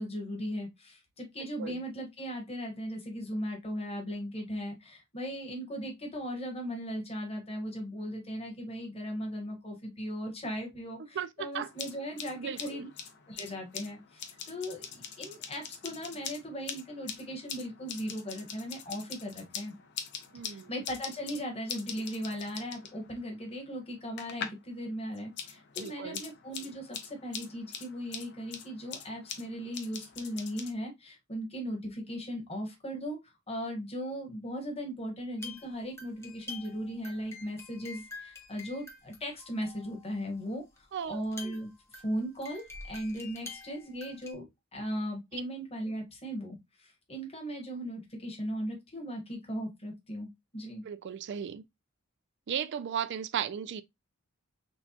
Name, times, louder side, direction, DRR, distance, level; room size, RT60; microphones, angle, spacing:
voice 1, 0.0-12.9 13.3-19.7 20.4-33.2 33.5-44.4 44.7-50.3 50.5-50.8, equal, 25° left, 1.3 m, -38 dB
voice 2, 11.0-11.7 12.4-12.8 20.3-20.7 25.8-26.2 40.9-41.3 45.3-45.4 50.8-51.6 52.5-53.8, right 8 dB, 55° right, 0.4 m, -36 dB
sound 1, 11.5-24.7 25.0-30.7, left 7 dB, 50° left, 0.7 m, -44 dB
sound 2, 35.4-40.3 40.8-40.9 41.0-44.3, left 3 dB, 10° left, 0.8 m, -47 dB
6.1 x 2.2 x 2.8 m
head